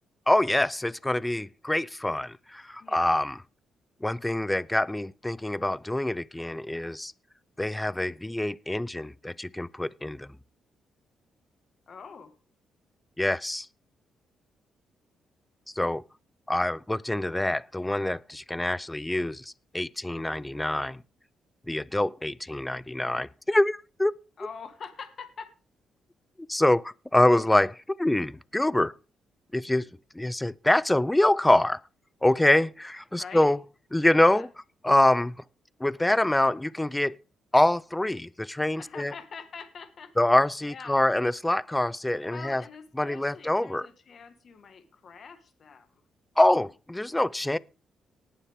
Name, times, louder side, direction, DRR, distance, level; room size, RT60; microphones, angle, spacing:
voice 1, 0.3-3.4 4.0-7.1 7.6-10.3 13.2-13.7 15.8-16.0 16.5-21.0 21.7-24.1 26.5-28.9 29.5-29.9 30.1-31.8 32.2-33.6 33.9-34.5 34.8-35.3 35.8-37.2 37.5-39.1 40.2-42.6 43.0-43.9 46.4-47.6, left 1 dB, 10° left, 0.5 m, -25 dB
voice 2, 2.8-3.1 11.9-12.3 24.4-25.5 33.1-33.5 34.1-34.5 38.8-40.1 40.6-41.1 42.3-46.0, left 5 dB, 50° left, 1.7 m, -44 dB
19.0 x 7.0 x 3.6 m
cardioid pair, 95°, 0 cm